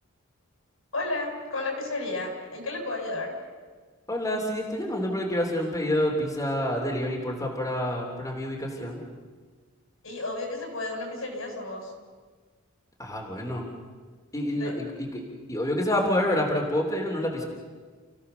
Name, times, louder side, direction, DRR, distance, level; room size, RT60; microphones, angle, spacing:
voice 1, 0.9-3.4 10.0-11.9 14.5-14.8, left 2 dB, 75° left, 1 dB, 6.6 m, -32 dB
voice 2, 4.1-9.0 13.0-13.6 14.3-15.2 15.5-17.5, left 1 dB, 15° left, -1 dB, 3.3 m, -28 dB
30.0 x 16.5 x 6.9 m, 1.5 s
head